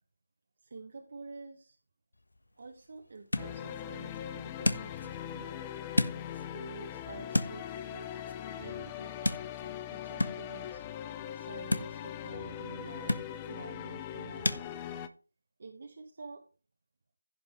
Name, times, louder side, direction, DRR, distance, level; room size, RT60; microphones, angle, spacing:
voice 1, 0.6-1.8 2.6-5.5 5.8-8.2 8.5-9.4 9.9-10.8 11.3-14.6 15.6-16.5, right 3 dB, 40° right, 3 dB, 1.3 m, -48 dB
sound 1, 2.1-14.6, left 2 dB, 75° left, 1.3 m, -37 dB
sound 2, 3.3-15.1, left 10 dB, 10° left, 0.4 m, -41 dB
16.0 x 5.8 x 3.3 m, 0.34 s
figure-of-eight pair, 170°, 0 cm